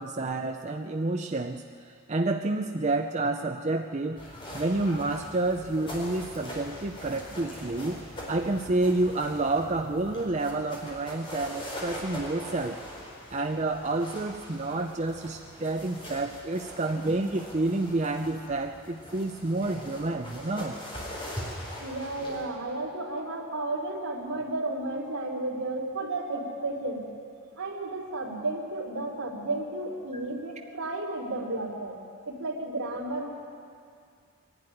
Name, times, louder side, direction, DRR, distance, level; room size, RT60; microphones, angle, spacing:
voice 1, 0.0-1.6 2.1-4.2 4.5-8.0 8.3-12.8 13.3-20.7 30.1-30.2, right 2 dB, 30° right, 4 dB, 0.6 m, -29 dB
sound 1, 4.2-22.4, equal, 25° left, 4.5 m, -42 dB
voice 2, 21.8-27.0 27.6-32.0 32.3-33.3, right 2 dB, 80° right, -2 dB, 3.6 m, -33 dB
22.0 x 12.0 x 9.8 m, 2.3 s
head